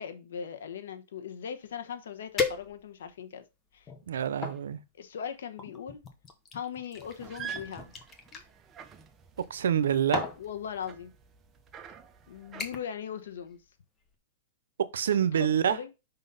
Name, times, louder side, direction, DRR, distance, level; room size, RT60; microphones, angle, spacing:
voice 1, 0.0-3.4 3.7-3.9 5.0-6.0 6.5-7.9 10.4-11.1 12.3-13.6 15.1-15.9, left 8 dB, 85° left, 1.0 m, -39 dB
sound 1, 1.7-1.8 2.4-3.1 3.8-4.6 5.6-8.5 9.6-9.8 10.1-10.4 11.3-11.5 11.9-12.2 12.6-13.0 13.3-13.7 14.0-14.1, left 5 dB, 20° left, 1.1 m, -36 dB
voice 2, 4.1-4.8 9.5-10.2 14.8-15.8, right 9 dB, 90° right, 0.7 m, -26 dB
sound 2, 7.0-12.7, right 7 dB, 20° right, 0.8 m, -47 dB
5.5 x 4.0 x 5.4 m
supercardioid pair, 145°, 0 cm